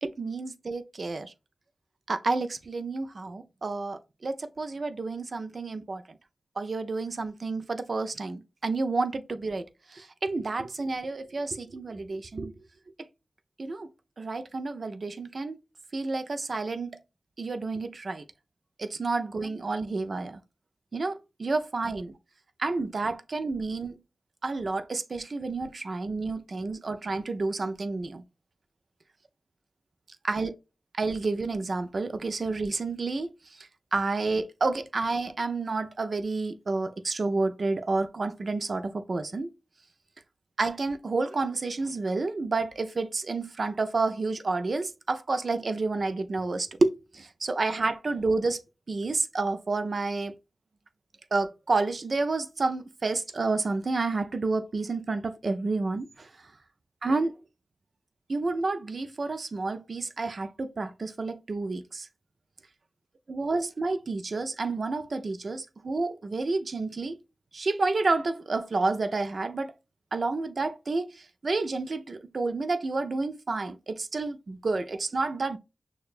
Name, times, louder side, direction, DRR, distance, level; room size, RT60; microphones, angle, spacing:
voice 1, 0.0-1.3 2.1-6.0 6.6-9.6 9.9-12.5 13.6-13.9 14.2-15.6 15.9-16.9 17.4-18.2 18.8-20.4 20.9-22.1 22.6-24.0 24.4-28.2 30.2-30.5 31.0-39.5 40.6-48.6 48.9-50.3 51.3-56.3 57.0-57.3 58.3-62.1 63.3-67.2 67.5-69.7 70.1-75.6, right 3 dB, 65° right, 0.4 m, -30 dB
6.4 x 2.2 x 2.4 m
cardioid pair, 45°, 0 cm